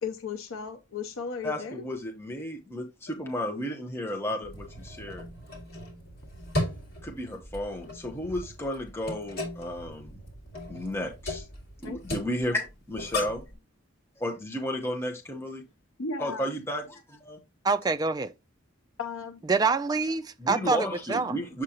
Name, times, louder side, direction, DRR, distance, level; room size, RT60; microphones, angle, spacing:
voice 1, 0.0-1.9 11.8-12.0 16.0-16.5 19.0-19.4, left 5 dB, 85° left, 0.6 m, -35 dB
voice 2, 1.4-5.2 7.0-10.2 10.7-11.5 11.8-13.4 14.2-15.6 16.2-17.4 20.4-21.6, equal, 10° left, 0.8 m, -33 dB
sound 1, 4.4-13.5, left 1 dB, 50° left, 2.3 m, -37 dB
voice 3, 17.6-18.3 19.5-21.4, right 4 dB, 20° right, 0.3 m, -26 dB
7.4 x 5.1 x 2.8 m
head